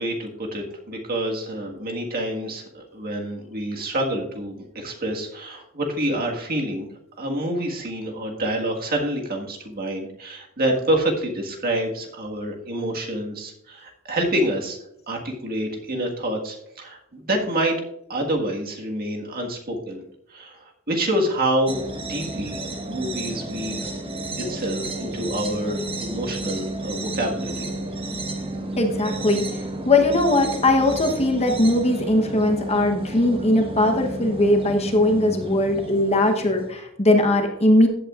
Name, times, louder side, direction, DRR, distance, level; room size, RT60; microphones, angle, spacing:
voice 1, 0.0-6.9 7.2-14.8 15.1-17.8 18.1-20.0 20.3-21.8 22.1-23.9 24.4-27.7, right 1 dB, 45° right, 1 dB, 1.7 m, -27 dB
sound 1, 21.7-36.7, right 2 dB, 25° right, 1.3 m, -32 dB
voice 2, 28.8-29.5 29.8-37.9, left 1 dB, 30° left, 4 dB, 1.1 m, -19 dB
14.5 x 8.6 x 2.5 m, 0.80 s
head